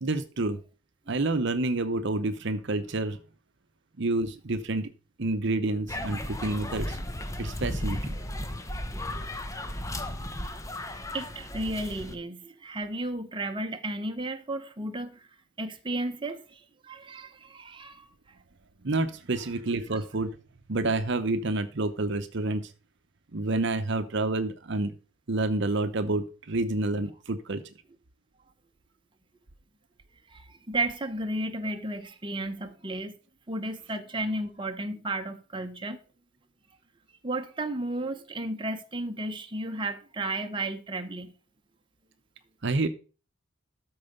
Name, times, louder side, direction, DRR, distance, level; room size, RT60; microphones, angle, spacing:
voice 1, 0.0-0.6 1.1-3.2 4.0-4.9 5.2-7.0 7.4-8.2 18.8-20.4 20.7-22.7 23.3-24.9 25.3-27.7 42.6-42.9, right 2 dB, 60° right, 0.9 m, -28 dB
sound 1, 5.9-12.1, left 1 dB, 15° left, 1.0 m, -35 dB
voice 2, 11.1-15.2 15.6-18.1 19.9-20.0 30.3-33.1 33.5-36.0 37.2-41.3, right 2 dB, 25° right, 1.0 m, -33 dB
13.0 x 4.8 x 5.3 m
head